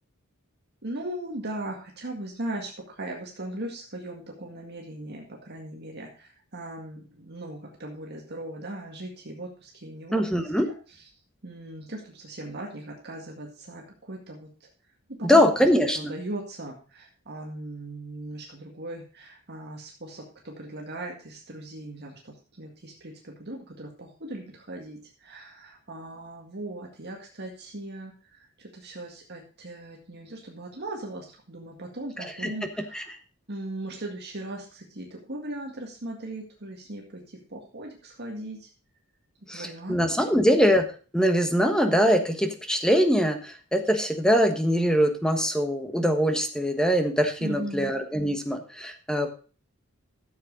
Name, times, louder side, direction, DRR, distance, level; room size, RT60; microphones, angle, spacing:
voice 1, 0.8-10.2 10.6-10.7 11.4-14.7 15.2-15.7 16.0-33.1 33.5-38.7 39.5-40.0 40.3-40.4 47.4-47.9, right 1 dB, 50° right, 0 dB, 2.0 m, -38 dB
voice 2, 10.1-10.7 15.2-16.1 32.2-32.5 32.9-33.0 39.5-40.8 41.1-49.3, equal, 5° left, 6 dB, 1.3 m, -23 dB
13.0 x 7.5 x 4.0 m, 0.37 s
head